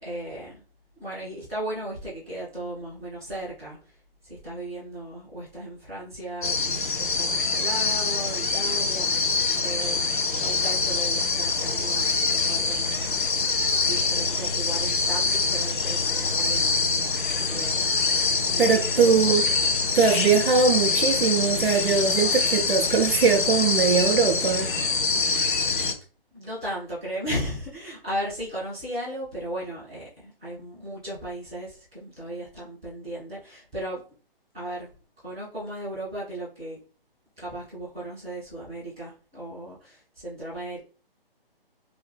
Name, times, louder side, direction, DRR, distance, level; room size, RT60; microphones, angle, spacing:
voice 1, 0.0-0.6 1.0-13.1 13.8-16.8 17.4-17.9 18.5-19.4 25.1-25.7 26.3-34.0 34.5-34.9 35.2-36.8 37.4-40.8, right 1 dB, 5° right, -15 dB, 0.4 m, -36 dB
sound 1, 6.4-25.9, left 4 dB, 55° left, 0.6 m, -25 dB
sound 2, 7.2-25.0, left 2 dB, 75° left, 1.3 m, -44 dB
voice 2, 18.6-19.4 19.9-24.7, right 5 dB, 70° right, 3 dB, 0.6 m, -21 dB
2.7 x 2.0 x 3.3 m, 0.38 s
figure-of-eight pair, 145°, 30 cm